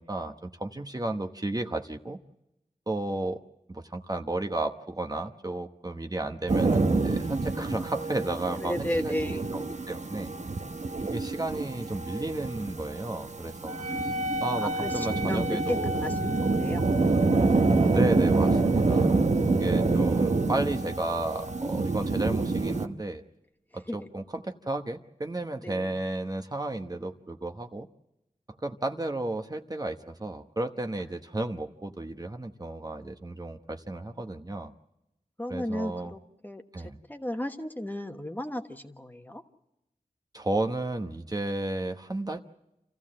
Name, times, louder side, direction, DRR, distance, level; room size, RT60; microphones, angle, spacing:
voice 1, 0.0-2.2 2.9-3.4 3.7-9.2 9.5-10.3 11.0-13.8 14.4-16.1 17.9-19.2 19.6-23.2 23.7-27.9 28.6-34.7 35.5-36.1 36.7-37.0 40.3-42.4, right 2 dB, 25° right, 6 dB, 1.0 m, -33 dB
sound 1, 6.5-22.9, right 3 dB, 60° right, 1.0 m, -27 dB
voice 2, 8.6-9.5 13.8-14.3 14.6-16.8 23.9-24.1 25.6-26.0 35.4-39.4, left 1 dB, 15° left, 6 dB, 1.3 m, -35 dB
Wind instrument woodwind instrument, 13.7-22.6, left 1 dB, 75° right, 1.2 m, -37 dB
27.5 x 14.5 x 7.5 m, 0.91 s
wide cardioid pair, 60°, 14 cm